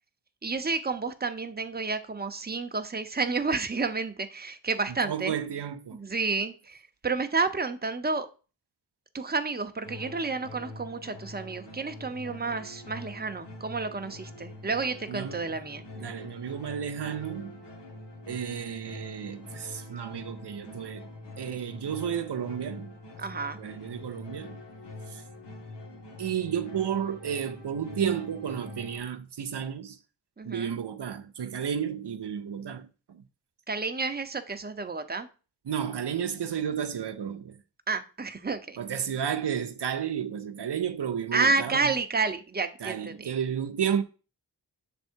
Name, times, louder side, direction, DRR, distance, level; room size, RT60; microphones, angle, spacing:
voice 1, 0.4-5.4 5.9-6.8 7.0-8.3 9.1-15.8 23.2-23.6 30.4-30.7 33.7-35.3 37.9-38.8 41.3-43.3, right 4 dB, 25° right, 0.7 m, -30 dB
voice 2, 5.0-6.0 15.1-15.4 16.0-17.5 18.3-21.1 21.4-22.9 23.6-24.6 25.1-25.2 26.2-30.0 30.5-32.9 35.7-37.6 38.8-41.8 42.8-44.0, right 8 dB, 80° right, 0.6 m, -32 dB
sound 1, 9.8-29.0, left 2 dB, 90° left, 1.3 m, -44 dB
6.7 x 3.6 x 4.5 m
wide cardioid pair, 50°, 41 cm